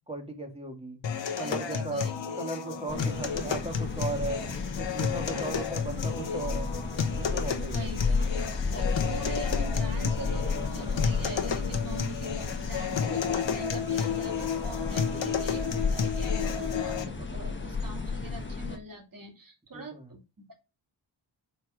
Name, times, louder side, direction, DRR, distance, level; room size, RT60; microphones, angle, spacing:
voice 1, 0.1-1.0 1.4-2.1 2.4-4.4 4.8-6.7 7.1-7.9 11.9-12.1 19.7-20.1, right 2 dB, 15° right, 3 dB, 1.9 m, -36 dB
sound 1, 1.0-17.0, left 7 dB, 70° left, 1.1 m, -32 dB
voice 2, 1.3-2.1 5.3-5.6 7.6-8.2 8.7-20.6, right 3 dB, 45° right, 1 dB, 2.6 m, -43 dB
sound 2, 2.9-18.8, left 4 dB, 25° left, 1.2 m, -33 dB
5.4 x 4.5 x 6.1 m, 0.28 s
wide cardioid pair, 100°, 46 cm